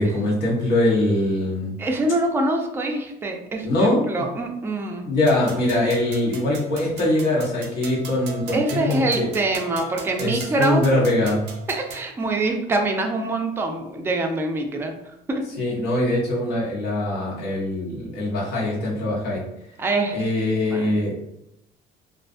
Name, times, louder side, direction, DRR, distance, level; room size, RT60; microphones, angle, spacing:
voice 1, 0.0-1.7 3.6-4.3 5.0-9.3 10.2-11.5 15.6-19.4 20.1-21.1, left 1 dB, 75° left, -5 dB, 1.0 m, -22 dB
voice 2, 1.8-5.1 8.5-10.9 11.7-14.9 15.3-15.4 19.8-20.2 20.7-20.9, right 2 dB, 15° right, 2 dB, 0.3 m, -24 dB
sound 1, 5.3-12.1, right 6 dB, 90° right, 0.5 m, -39 dB
2.4 x 2.2 x 2.5 m, 0.82 s
cardioid pair, 110°, 17 cm